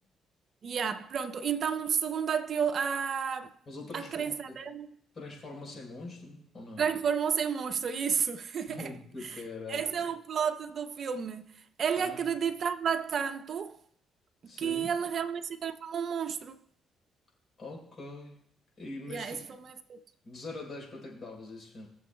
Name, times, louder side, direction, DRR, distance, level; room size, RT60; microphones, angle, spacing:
voice 1, 0.6-3.5 3.9-4.9 6.8-8.9 9.2-9.4 9.7-13.8 14.6-16.6 19.1-20.0, right 7 dB, 55° right, 0.6 m, -31 dB
voice 2, 3.7-4.6 5.1-6.9 8.7-9.9 12.0-12.3 14.5-14.9 17.6-18.4 18.8-19.6 20.2-21.9, left 2 dB, 45° left, 4.0 m, -43 dB
20.5 x 7.0 x 2.2 m
cardioid pair, 90°, 0 cm